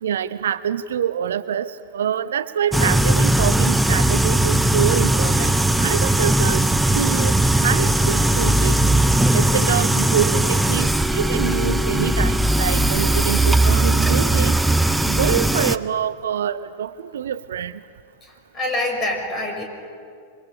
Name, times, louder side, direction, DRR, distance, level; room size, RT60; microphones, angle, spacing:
voice 1, 0.0-5.5 5.8-6.6 6.9-8.8 9.3-14.6 15.0-17.7, right 9 dB, 65° right, 16 dB, 0.6 m, -25 dB
sound 1, 2.7-15.8, right 1 dB, 5° right, 0.7 m, -18 dB
voice 2, 18.2-19.6, left 2 dB, 25° left, 3 dB, 6.6 m, -26 dB
27.0 x 24.0 x 6.9 m, 2.3 s
figure-of-eight pair, 90°, 0 cm